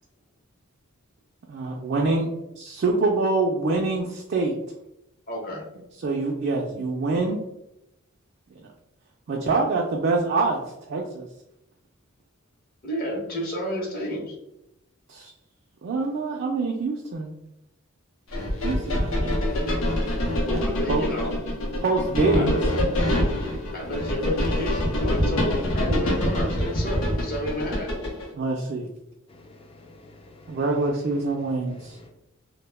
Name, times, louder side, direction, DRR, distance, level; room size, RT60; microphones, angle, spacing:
voice 1, 1.5-2.3 2.6-4.6 6.0-7.4 8.5-8.7 9.3-10.6 10.9-11.3 15.1-15.3 15.8-17.3 18.6-19.3 20.9-21.0 21.8-22.5 28.3-28.9 30.5-32.0, right 3 dB, 55° right, 0 dB, 0.3 m, -25 dB
voice 2, 5.3-5.6 6.7-6.8 12.8-14.3 20.5-21.3 21.7-21.8 22.3-22.8 23.7-27.9, equal, 45° left, -2 dB, 0.8 m, -30 dB
sound 1, 18.3-28.3, left 1 dB, 85° left, 0.7 m, -25 dB
voice 3, 29.3-30.7 31.2-32.1, left 2 dB, 25° left, 3 dB, 0.3 m, -50 dB
2.1 x 2.1 x 3.2 m, 0.85 s
head